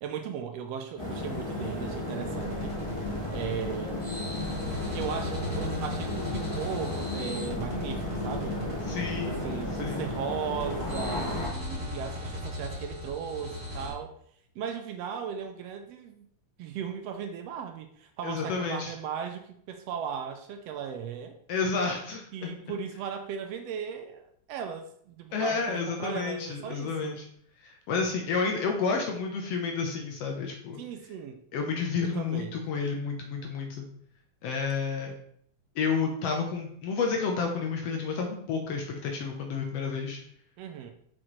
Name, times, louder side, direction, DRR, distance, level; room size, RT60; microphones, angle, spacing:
voice 1, 0.0-2.8 3.3-4.0 4.9-8.6 9.2-14.1 14.5-16.2 16.6-21.3 22.3-27.2 30.8-31.4 32.0-32.6 40.6-40.9, right 7 dB, 80° right, 6 dB, 1.5 m, -37 dB
sound 1, 1.0-11.5, left 2 dB, 30° left, 0.5 m, -34 dB
sound 2, 2.3-13.9, left 1 dB, 10° right, 2.7 m, -38 dB
voice 2, 8.9-9.5 9.8-10.0 18.2-18.9 21.5-22.5 25.3-27.3 27.6-30.8 31.5-33.9 34.4-35.1 35.7-40.2, left 5 dB, 70° left, 2 dB, 1.7 m, -30 dB
6.2 x 6.2 x 3.1 m, 0.65 s
omnidirectional pair, 3.3 m